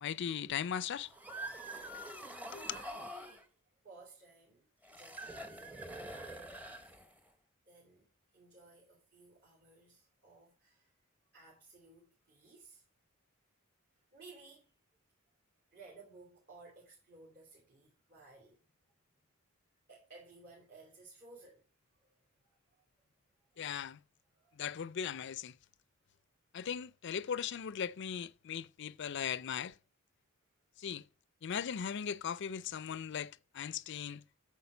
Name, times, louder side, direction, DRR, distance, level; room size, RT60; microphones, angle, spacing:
voice 1, 0.0-1.1 2.5-2.7 23.6-24.0 24.6-25.6 26.5-29.7 30.8-31.0 31.4-34.2, left 8 dB, 55° left, 0.4 m, -38 dB
sound 1, 1.0-3.4 4.8-7.3, right 1 dB, 10° right, 0.8 m, -45 dB
voice 2, 2.7-3.5 3.8-6.9 7.7-10.9 11.3-12.8 14.1-14.7 15.7-18.7 19.1-19.2 19.9-21.6 21.9-22.8 23.5-23.7 24.3-24.8 33.9-34.0, right 3 dB, 50° right, 3.2 m, -58 dB
8.6 x 4.5 x 6.9 m
head